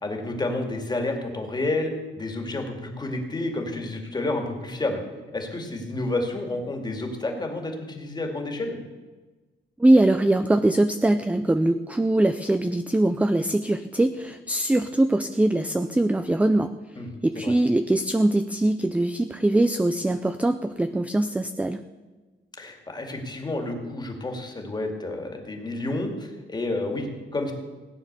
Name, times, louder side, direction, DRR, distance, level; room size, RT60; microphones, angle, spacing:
voice 1, 0.0-5.0 5.3-8.8 17.0-17.1 17.4-17.5 22.5-27.5, left 2 dB, 20° left, 3 dB, 2.2 m, -30 dB
voice 2, 9.8-16.7 17.2-21.8, right 1 dB, 5° right, 10 dB, 0.4 m, -22 dB
17.0 x 9.6 x 6.8 m, 1.2 s
wide cardioid pair, 175°, 20 cm